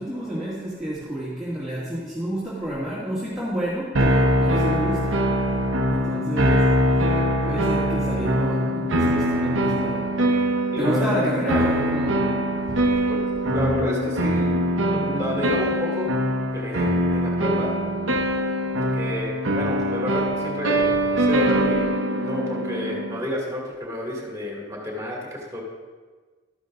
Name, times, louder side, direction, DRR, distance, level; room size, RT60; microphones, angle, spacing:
voice 1, 0.0-5.3 5.9-6.7 7.4-10.1 10.8-12.3 12.7-12.9 13.5-13.6 20.8-20.9, right 1 dB, ahead, -10 dB, 2.3 m, -29 dB
sound 1, 4.0-23.2, equal, 80° right, 1.0 m, -23 dB
voice 2, 10.7-11.1 13.0-16.1 16.5-17.7 18.8-25.6, left 1 dB, 15° right, -2 dB, 2.5 m, -30 dB
13.5 x 11.0 x 2.6 m, 1.4 s
head